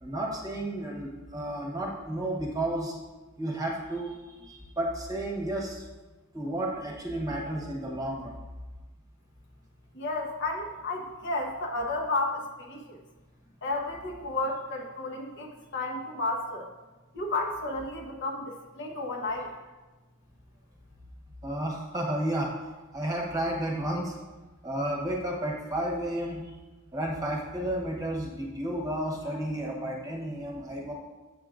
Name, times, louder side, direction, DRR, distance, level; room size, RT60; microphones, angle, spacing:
voice 1, 0.0-2.9 3.4-4.1 4.4-5.8 6.3-8.4 19.3-19.5 21.4-22.5 22.9-24.1 24.6-26.4 26.9-30.9, right 1 dB, 15° right, -1 dB, 1.0 m, -32 dB
voice 2, 9.9-13.0 13.6-16.7 17.1-19.5, left 2 dB, 60° left, 0 dB, 0.9 m, -32 dB
7.6 x 7.4 x 2.5 m, 1.2 s
head